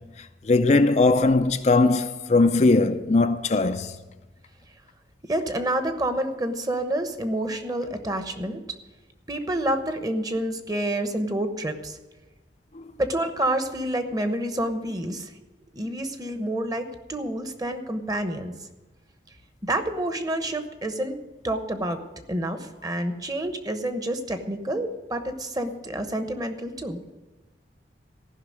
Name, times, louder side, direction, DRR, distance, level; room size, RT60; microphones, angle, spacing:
voice 1, 0.5-3.9 12.8-12.9, left 3 dB, 40° left, 0.5 m, -20 dB
voice 2, 5.3-8.6 9.3-12.0 13.0-15.3 15.7-18.5 19.6-21.2 21.4-22.0 22.3-27.0, right 1 dB, 20° right, 1.0 m, -28 dB
15.0 x 5.9 x 9.3 m
head